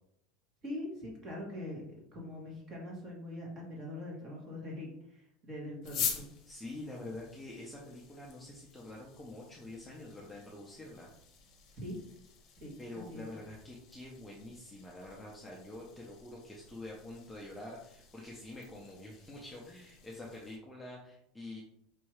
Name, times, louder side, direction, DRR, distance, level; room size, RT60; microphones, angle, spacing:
voice 1, 0.6-1.8 2.1-6.2 11.7-12.0 12.6-13.3, left 1 dB, 25° right, -2 dB, 1.2 m, -43 dB
sound 1, 5.8-20.6, left 7 dB, 35° left, 0.8 m, -46 dB
voice 2, 6.5-11.1 12.8-21.6, left 1 dB, 5° left, -4 dB, 0.5 m, -46 dB
4.6 x 2.7 x 3.1 m, 0.74 s
cardioid pair, 175°, 0 cm